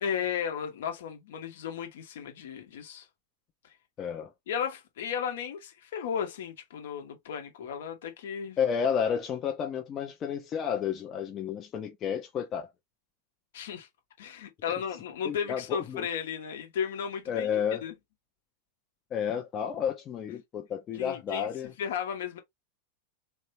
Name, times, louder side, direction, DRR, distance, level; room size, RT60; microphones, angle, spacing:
voice 1, 0.0-3.1 4.5-8.6 13.5-13.9 14.2-17.5 17.8-17.9 21.0-22.4, left 7 dB, 60° left, 1.1 m, -34 dB
voice 2, 4.0-4.3 8.6-12.7 15.2-16.1 17.3-17.8 19.1-21.7, left 8 dB, 30° left, 0.6 m, -31 dB
3.4 x 2.7 x 2.7 m
figure-of-eight pair, 90°, 0 cm